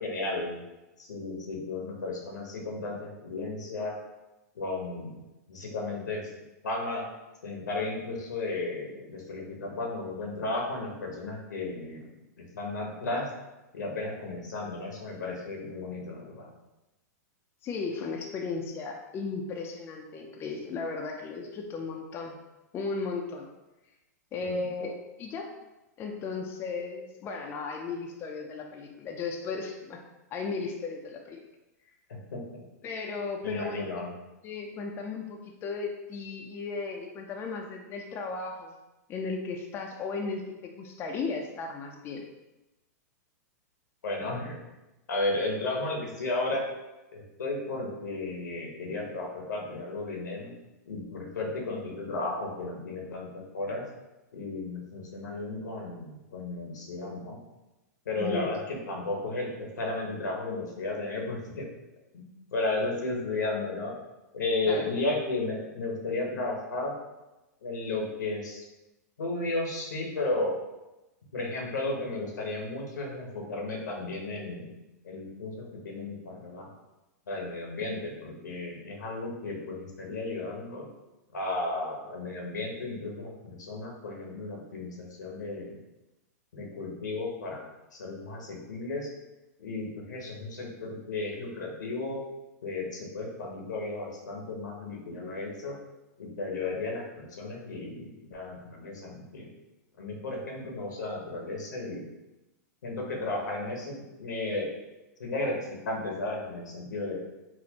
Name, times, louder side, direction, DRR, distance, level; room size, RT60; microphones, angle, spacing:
voice 1, 0.0-0.6 1.0-3.9 4.5-5.1 5.5-6.2 6.6-7.0 7.4-12.1 12.4-13.3 13.7-16.5 24.4-24.7 32.1-32.6 33.4-34.1 44.0-44.6 45.1-46.6 47.1-50.5 50.9-53.8 54.3-57.4 58.1-61.7 62.1-62.3 62.5-63.9 64.3-66.9 67.6-68.6 69.2-70.5 71.3-74.7 75.0-76.7 77.3-80.8 81.3-85.7 86.5-87.7 87.9-89.1 89.6-92.2 92.6-95.8 96.2-99.5 100.0-102.0 102.8-104.7 105.2-107.2, left 2 dB, 90° left, -1 dB, 0.9 m, -34 dB
voice 2, 17.6-22.4 22.7-23.5 24.3-25.5 26.0-30.0 30.3-31.4 32.8-33.9 34.4-38.7 39.1-42.3 58.2-58.5 64.7-64.9, left 4 dB, 25° left, 2 dB, 0.4 m, -35 dB
4.2 x 2.1 x 2.8 m, 1.0 s
hypercardioid pair, 125°, 9 cm